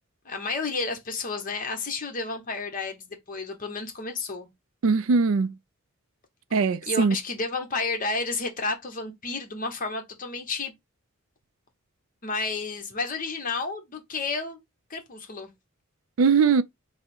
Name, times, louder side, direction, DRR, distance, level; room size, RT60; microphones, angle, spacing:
voice 1, 0.2-4.5 6.9-10.7 12.2-14.6 14.9-15.5, left 3 dB, 40° left, 0.9 m, -31 dB
voice 2, 4.8-5.5 6.5-7.2 16.2-16.6, right 5 dB, 65° right, 0.4 m, -21 dB
3.5 x 2.1 x 4.3 m
head